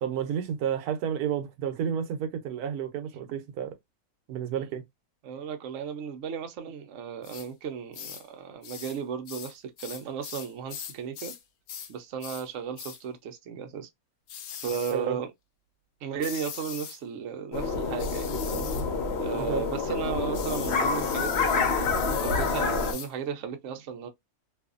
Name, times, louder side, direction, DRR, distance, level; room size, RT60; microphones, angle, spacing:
voice 1, 0.0-3.7 4.3-4.8 14.9-15.2 19.3-19.7, right 8 dB, 85° right, 1.1 m, -31 dB
voice 2, 5.2-11.3 11.9-13.9 14.6-15.3 16.0-18.7 19.2-24.1, right 7 dB, 65° right, 0.8 m, -35 dB
sound 1, 7.2-7.5 7.9-8.3 8.6-9.0 9.3-11.4 11.7-11.9 12.2-12.5 12.8-13.0 14.3-15.0 16.2-17.0 18.0-18.9 20.3-23.1, left 8 dB, 80° left, 1.0 m, -40 dB
sound 2, 17.5-22.9, left 4 dB, 55° left, 0.9 m, -28 dB
2.6 x 2.5 x 2.4 m
omnidirectional pair, 1.6 m